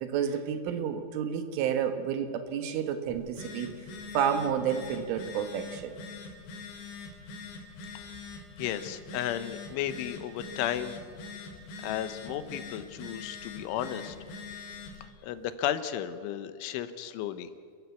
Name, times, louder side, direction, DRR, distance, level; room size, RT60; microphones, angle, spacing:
voice 1, 0.0-3.7 4.1-5.9, right 8 dB, 85° right, 8 dB, 4.0 m, -30 dB
Telephone, 3.1-15.0, left 4 dB, 65° left, 5.0 m, -43 dB
voice 2, 8.6-11.0 11.8-14.2 15.2-17.5, left 11 dB, 85° left, 11 dB, 3.5 m, -34 dB
29.0 x 14.5 x 8.4 m, 2.1 s
omnidirectional pair, 5.5 m